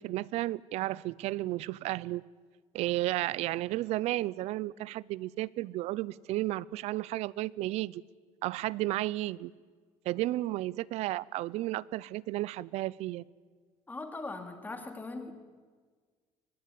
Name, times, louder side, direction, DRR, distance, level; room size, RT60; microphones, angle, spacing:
voice 1, 0.0-2.2 2.7-8.0 8.4-9.5 10.1-13.2, right 17 dB, 70° right, 0.6 m, -33 dB
voice 2, 13.9-15.3, left 3 dB, 15° left, 2.5 m, -40 dB
23.0 x 20.0 x 8.4 m
cardioid pair, 145°, 11 cm